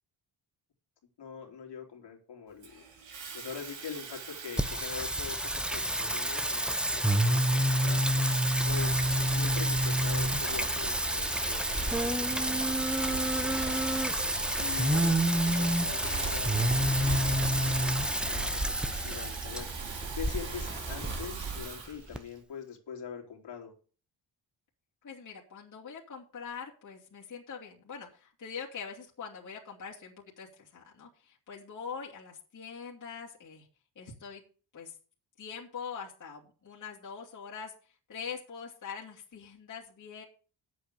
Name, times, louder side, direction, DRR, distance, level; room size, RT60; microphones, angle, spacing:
voice 1, 1.2-2.8 3.3-8.0 8.7-13.8 14.5-15.2 15.5-19.7 20.1-23.7, left 7 dB, 65° left, 1 dB, 3.3 m, -44 dB
Water tap faucet / Fill (with liquid), 2.6-22.4, right 6 dB, 80° right, 3.5 m, -42 dB
Singing, 4.6-22.2, right 1 dB, ahead, 0.9 m, -29 dB
sound 1, 8.7-21.6, right 3 dB, 25° right, 4.5 m, -39 dB
voice 2, 25.0-33.7 34.0-34.4 34.7-35.0 35.4-40.2, left 6 dB, 40° left, -4 dB, 2.7 m, -43 dB
8.6 x 7.8 x 6.9 m, 0.39 s
cardioid pair, 80°, 45 cm